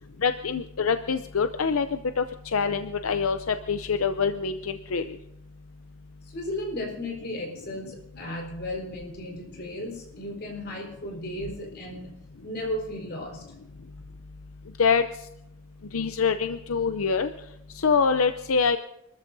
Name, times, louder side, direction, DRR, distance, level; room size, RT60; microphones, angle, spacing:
voice 1, 0.2-2.2 2.5-5.0 14.8-15.0 15.9-17.3 17.8-18.8, left 5 dB, 85° left, 9 dB, 0.6 m, -25 dB
voice 2, 6.3-13.5, left 1 dB, 50° left, -1 dB, 4.5 m, -35 dB
29.0 x 13.5 x 2.7 m, 0.86 s
head